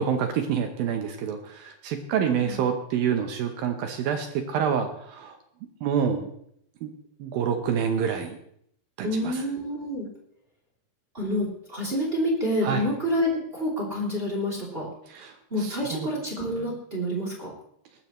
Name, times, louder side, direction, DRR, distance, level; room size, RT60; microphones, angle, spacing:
voice 1, 0.0-5.4 5.8-6.3 6.8-6.9 7.2-8.4 9.0-9.4 12.6-12.8 15.1-16.1, right 7 dB, 75° right, 6 dB, 2.2 m, -27 dB
voice 2, 2.2-2.6 9.0-10.1 11.1-14.9 15.5-17.5, equal, 15° right, -3 dB, 2.4 m, -28 dB
19.0 x 12.5 x 3.1 m, 0.71 s
omnidirectional pair, 5.2 m